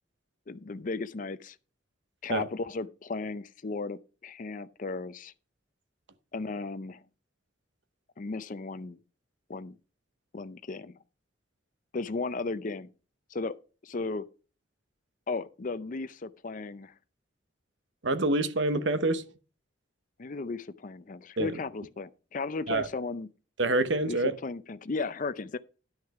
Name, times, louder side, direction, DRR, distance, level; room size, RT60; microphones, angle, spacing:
voice 1, 0.5-1.6 2.2-5.3 6.3-7.0 8.2-9.0 9.5-9.8 10.3-10.9 11.9-12.9 13.3-13.6 13.8-14.3 15.3-16.9 20.2-23.3 24.1-25.6, left 3 dB, 40° left, 0.5 m, -35 dB
voice 2, 18.0-19.2 21.4-21.5 22.7-22.9 23.6-24.4, right 2 dB, 65° right, 0.9 m, -26 dB
10.5 x 6.4 x 4.7 m
head